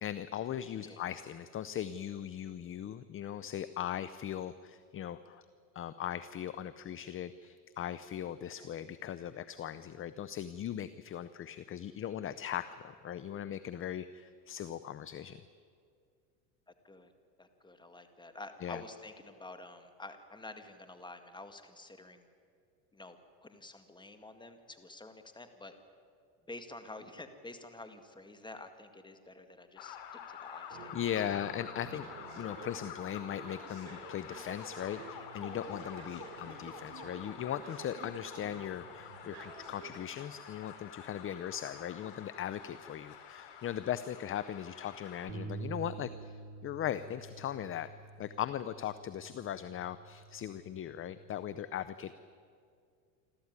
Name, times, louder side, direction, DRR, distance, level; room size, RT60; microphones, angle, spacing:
voice 1, 0.0-5.5 5.7-15.4 18.6-18.8 30.9-32.1 32.4-47.9 48.2-52.1, left 10 dB, 25° left, 14 dB, 0.6 m, -39 dB
voice 2, 17.4-22.3 22.9-25.7 26.5-30.9 31.9-32.0 36.2-36.4, left 2 dB, 10° left, 8 dB, 2.0 m, -49 dB
sound 1, 29.8-45.3, left 8 dB, 60° left, 3.7 m, -48 dB
sound 2, 30.7-40.0, right 6 dB, 75° right, 7.0 m, -51 dB
sound 3, 45.3-51.5, right 4 dB, 50° right, 3.1 m, -48 dB
27.5 x 13.5 x 9.6 m, 2.3 s
supercardioid pair, 115°, 48 cm